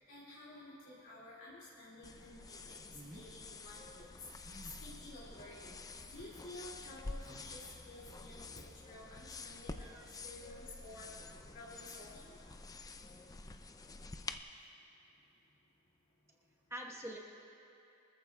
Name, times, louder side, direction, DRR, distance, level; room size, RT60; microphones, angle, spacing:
voice 1, 0.0-4.1 4.4-5.8 6.1-9.9 10.2-12.3, left 2 dB, 70° left, -9 dB, 2.4 m, -52 dB
sound 1, 2.0-14.4, left 3 dB, 20° left, 0.4 m, -49 dB
sound 2, 2.9-3.3 4.4-4.9 5.9-6.3 7.2-7.5, right 1 dB, 40° right, 1.6 m, -55 dB
voice 2, 9.7-10.8 12.5-12.6 16.7-17.2, right 1 dB, 15° right, -2 dB, 1.2 m, -48 dB
23.5 x 14.5 x 2.3 m, 2.7 s
head